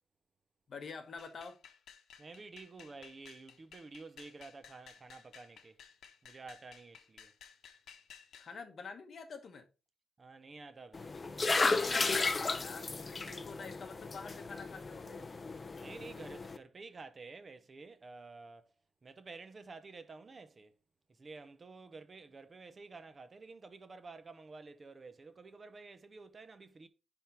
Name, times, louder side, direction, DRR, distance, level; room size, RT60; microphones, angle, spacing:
voice 1, 0.7-1.6 8.4-9.7 12.3-15.3, left 5 dB, 45° left, 1.1 m, -47 dB
sound 1, 1.2-8.5, left 8 dB, 75° left, 0.9 m, -57 dB
voice 2, 2.2-5.8 6.2-7.3 10.2-11.3 15.8-18.7 19.0-20.7 21.1-26.9, right 3 dB, 25° right, 0.6 m, -51 dB
sound 2, 10.9-16.6, left 3 dB, 25° left, 0.5 m, -34 dB
10.0 x 3.5 x 4.3 m
wide cardioid pair, 175°, 0 cm